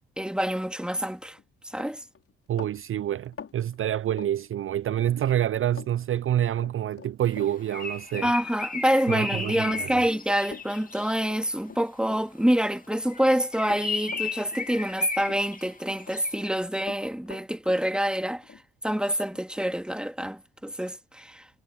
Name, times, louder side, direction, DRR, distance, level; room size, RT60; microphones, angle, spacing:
voice 1, 0.2-1.4 1.6-2.0 8.2-18.6 18.8-21.5, equal, 5° right, 2.2 m, -27 dB
Run, 1.2-1.4 1.7-5.1 5.4-5.9 6.2-12.5 12.8-15.0 15.2-16.2 16.4-19.8, left 6 dB, 50° left, 5.5 m, -46 dB
voice 2, 2.5-8.3 9.1-10.0, right 11 dB, 45° right, 0.5 m, -27 dB
Bird, 7.3-11.4 13.0-16.6, left 4 dB, 30° left, 2.9 m, -35 dB
hypercardioid pair, 45°, 29 cm